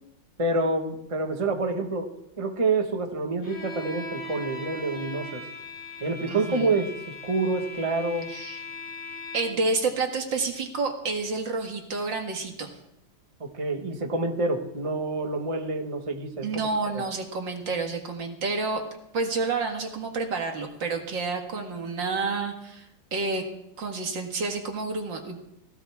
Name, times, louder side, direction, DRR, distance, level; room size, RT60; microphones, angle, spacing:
voice 1, 0.4-2.1 2.4-5.4 6.0-8.3 13.4-16.7 16.9-17.0, right 3 dB, 20° right, 3 dB, 1.3 m, -27 dB
Bowed string instrument, 3.4-9.7, left 1 dB, 40° left, 7.3 m, -39 dB
voice 2, 6.3-6.7 8.3-8.6 9.3-12.7 16.4-18.8 19.1-23.4 23.8-25.4, right 3 dB, 60° right, 3 dB, 2.4 m, -29 dB
17.5 x 16.5 x 3.6 m, 0.82 s
omnidirectional pair, 2.3 m